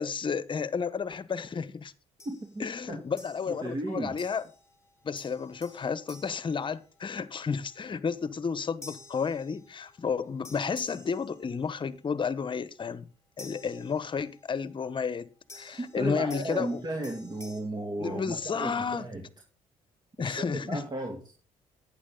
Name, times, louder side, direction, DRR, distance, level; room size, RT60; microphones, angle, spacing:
voice 1, 0.0-1.9 2.6-4.4 5.0-13.1 13.4-15.3 15.5-16.8 18.0-19.1 20.2-20.8, left 6 dB, 40° left, 1.1 m, -32 dB
sound 1, 2.2-2.6 3.2-3.8 4.2-4.7 5.2-7.3 8.8-10.0 10.4-11.9 13.4-14.4 15.5-17.6, left 3 dB, 20° left, 4.9 m, -51 dB
voice 2, 2.2-3.0 3.5-4.2 15.8-19.3 20.2-21.2, right 2 dB, 30° right, 2.7 m, -35 dB
11.0 x 9.9 x 3.9 m
supercardioid pair, 70°, 13 cm